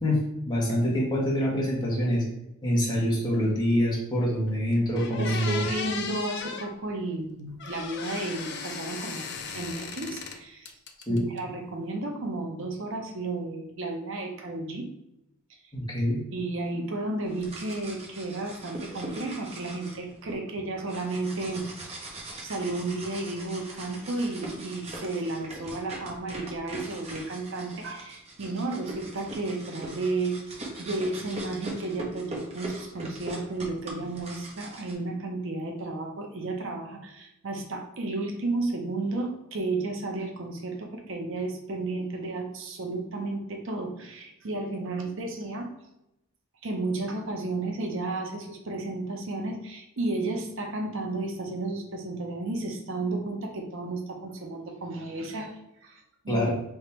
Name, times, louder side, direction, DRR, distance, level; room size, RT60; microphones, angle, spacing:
voice 1, 0.5-2.2 2.6-5.6 11.1-11.2 15.7-16.2 56.3-56.5, equal, 20° left, -5 dB, 1.3 m, -25 dB
sound 1, 4.5-4.6 4.9-6.7 7.6-10.4 10.7-11.4, left 5 dB, 50° left, 0.5 m, -36 dB
voice 2, 5.2-10.7 11.1-14.9 16.3-30.4 30.8-45.7 46.6-56.4, right 2 dB, 60° right, 3 dB, 0.6 m, -33 dB
sound 2, 17.2-20.3 20.9-34.9, right 2 dB, 30° right, 0.8 m, -41 dB
3.5 x 2.9 x 4.2 m, 0.87 s
head